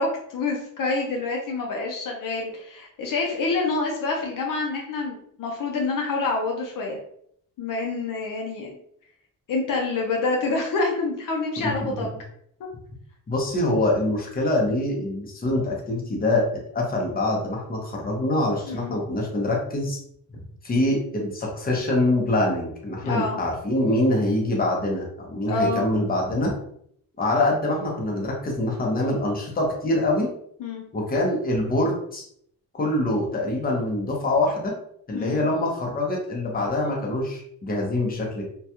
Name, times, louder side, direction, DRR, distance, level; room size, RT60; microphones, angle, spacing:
voice 1, 0.0-7.0 7.6-8.8 9.5-12.1 18.7-19.0 23.0-23.4 25.5-25.8 30.6-30.8 35.1-35.5, left 3 dB, 60° left, 0 dB, 0.6 m, -27 dB
voice 2, 13.3-16.4 16.7-20.0 20.6-26.5 27.2-30.3 30.9-32.2 32.8-34.7 35.1-38.5, left 1 dB, 25° left, -1 dB, 0.7 m, -24 dB
2.3 x 2.2 x 2.8 m, 0.68 s
cardioid pair, 105°, 37 cm